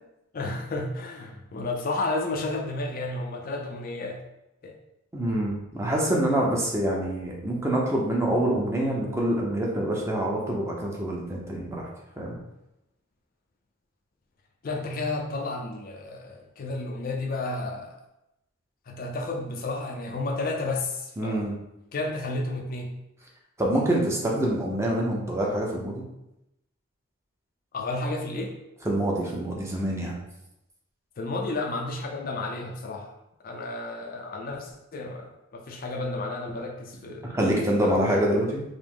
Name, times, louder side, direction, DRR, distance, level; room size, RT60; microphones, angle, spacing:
voice 1, 0.3-4.2 4.6-4.7 14.6-18.0 18.9-21.5 21.9-23.0 27.7-28.6 31.2-33.2 33.4-37.4 37.8-38.0, left 2 dB, 45° left, 2 dB, 0.4 m, -32 dB
voice 2, 5.1-11.9 12.2-12.3 21.2-21.5 23.6-26.0 28.8-30.1 37.3-38.6, right 1 dB, 15° right, -2 dB, 0.6 m, -26 dB
4.9 x 2.0 x 3.6 m, 0.89 s
head